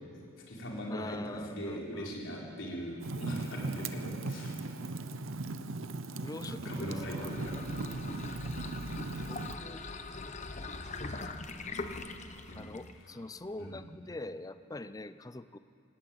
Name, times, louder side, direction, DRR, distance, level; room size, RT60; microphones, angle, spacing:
voice 1, 0.1-4.8 6.4-7.6 12.5-12.6 13.0-13.2 13.6-13.7, equal, 65° left, -3 dB, 4.3 m, -40 dB
voice 2, 0.9-2.1 6.2-7.3 9.3-9.8 12.6-15.6, left 2 dB, 15° left, 13 dB, 0.4 m, -43 dB
Fire, 3.0-9.5, right 3 dB, 75° right, 0.8 m, -38 dB
sound 1, 7.0-13.0, left 3 dB, 35° left, 0.9 m, -42 dB
17.5 x 17.0 x 9.0 m, 2.6 s
head